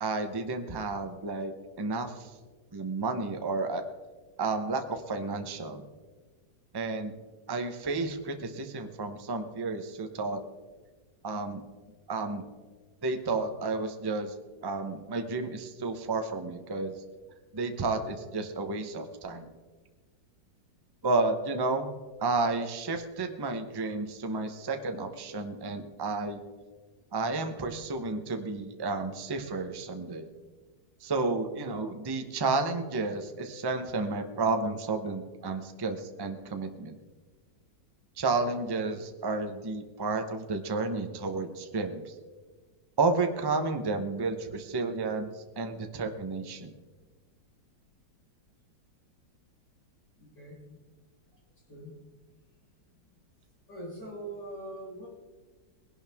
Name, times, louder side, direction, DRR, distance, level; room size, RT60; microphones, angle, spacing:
voice 1, 0.0-1.5 1.8-2.3 2.7-3.8 4.4-5.8 6.7-7.1 7.5-10.4 11.2-11.6 12.1-12.4 13.0-14.3 14.6-17.0 17.5-19.5 21.0-21.9 22.2-26.4 27.1-30.3 31.0-37.0 38.2-42.1 43.0-46.7, right 3 dB, 20° right, 6 dB, 0.6 m, -31 dB
voice 2, 50.2-50.8 51.7-51.9 53.7-55.1, right 1 dB, 70° left, -5 dB, 6.3 m, -42 dB
20.0 x 11.5 x 3.6 m, 1.3 s
omnidirectional pair, 2.0 m